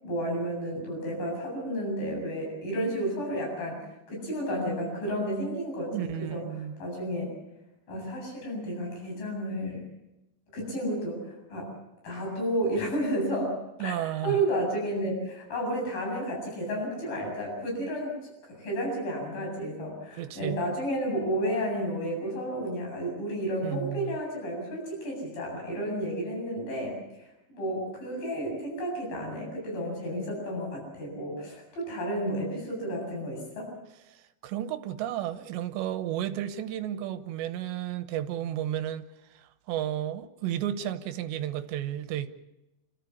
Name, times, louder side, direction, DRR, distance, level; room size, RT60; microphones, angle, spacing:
voice 1, 0.0-3.8 4.1-6.4 6.8-7.3 7.9-9.9 10.5-11.7 12.0-14.0 14.2-18.1 18.5-33.7, right 1 dB, 50° left, 9.7 m, -32 dB
voice 2, 5.9-6.7 13.8-14.4 20.1-20.6 23.6-24.2 34.1-39.1 39.3-42.3, right 11 dB, 75° right, 3.1 m, -33 dB
30.0 x 13.5 x 8.5 m
omnidirectional pair, 5.4 m